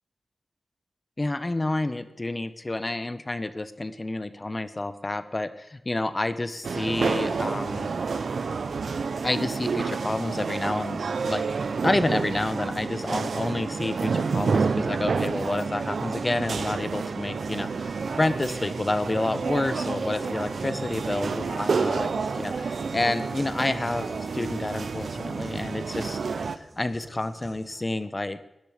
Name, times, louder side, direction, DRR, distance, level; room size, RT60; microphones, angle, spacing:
voice 1, 1.2-7.9 9.2-28.5, left 2 dB, 30° left, 13 dB, 1.0 m, -29 dB
sound 1, 6.6-26.6, right 5 dB, 80° right, 0.7 m, -29 dB
sound 2, 11.9-27.9, right 2 dB, 60° right, 4.6 m, -51 dB
sound 3, 17.5-25.5, left 1 dB, 80° left, 4.8 m, -50 dB
17.5 x 10.5 x 5.1 m, 0.94 s
cardioid pair, 60°, 0 cm